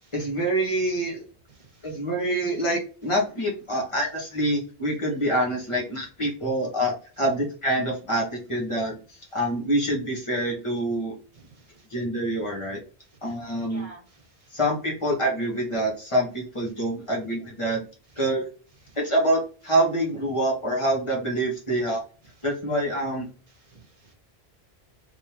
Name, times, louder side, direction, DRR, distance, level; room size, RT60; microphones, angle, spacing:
voice 1, 0.1-1.3 1.8-11.1 11.9-12.8 13.2-13.9 14.5-17.8 18.2-18.4 18.9-22.0 22.4-23.3, right 1 dB, 30° left, -2 dB, 1.5 m, -26 dB
voice 2, 1.6-1.9 11.4-11.9 13.7-14.5 17.1-17.2 18.2-18.3 18.9-19.0 23.6-24.1, right 2 dB, 35° right, 2 dB, 1.2 m, -50 dB
3.4 x 3.3 x 3.0 m, 0.36 s
omnidirectional pair, 1.1 m